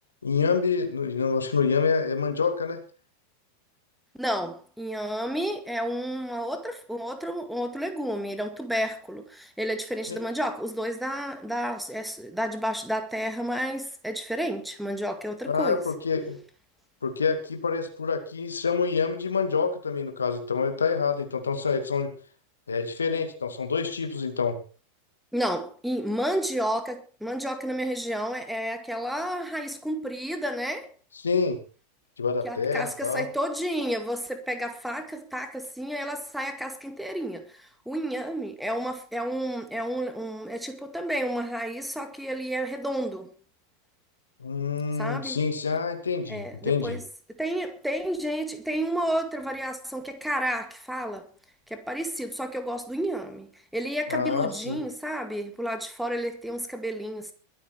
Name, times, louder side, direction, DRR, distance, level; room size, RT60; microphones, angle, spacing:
voice 1, 0.2-2.8 10.1-10.2 15.5-16.4 17.0-22.1 22.7-24.6 31.2-31.6 32.2-33.3 44.4-47.0 54.1-54.8, left 5 dB, 75° left, 2.3 m, -27 dB
voice 2, 4.2-15.8 25.3-30.9 32.4-43.3 45.0-45.4 46.3-47.0 47.4-51.3 51.7-57.3, equal, ahead, 2.1 m, -31 dB
22.5 x 8.6 x 4.5 m
figure-of-eight pair, 90°, 0 cm